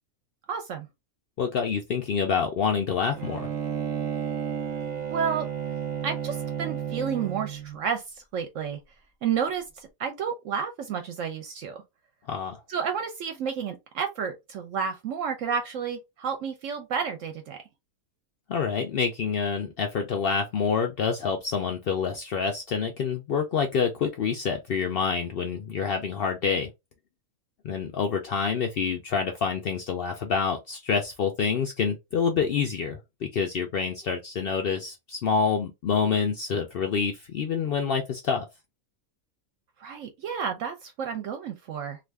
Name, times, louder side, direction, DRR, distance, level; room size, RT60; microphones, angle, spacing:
voice 1, 0.5-0.9 5.1-5.5 6.0-8.0 8.3-8.8 9.2-11.8 12.7-17.6 39.8-42.0, right 7 dB, 70° right, 0.9 m, -31 dB
voice 2, 1.4-3.5 12.3-12.6 18.5-26.7 27.6-38.5, left 6 dB, 80° left, 0.5 m, -27 dB
Bowed string instrument, 3.1-7.8, right 8 dB, 40° right, 0.6 m, -32 dB
2.5 x 2.4 x 3.3 m
omnidirectional pair, 1.5 m